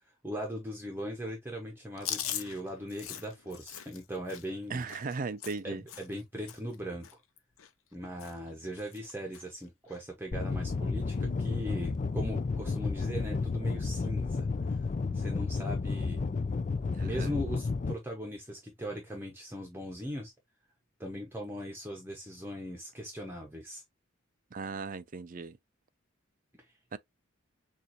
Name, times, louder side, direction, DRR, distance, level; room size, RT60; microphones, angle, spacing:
voice 1, 0.2-4.8 5.6-7.1 7.9-14.9 15.1-16.2 17.0-20.3 21.0-23.8 26.5-26.7, equal, 10° right, 0.9 m, -39 dB
Chewing mastication, 2.0-6.2 6.5-6.8 7.0-7.9 8.2-8.5 8.8-9.4 9.9-10.0 11.1-11.5, left 10 dB, 90° left, 0.7 m, -41 dB
voice 2, 4.7-5.8 16.9-17.3 24.5-25.6 26.9-27.0, right 4 dB, 40° right, 0.4 m, -37 dB
sound 1, 10.3-17.9, left 4 dB, 35° left, 0.3 m, -32 dB
6.8 x 2.5 x 2.9 m
head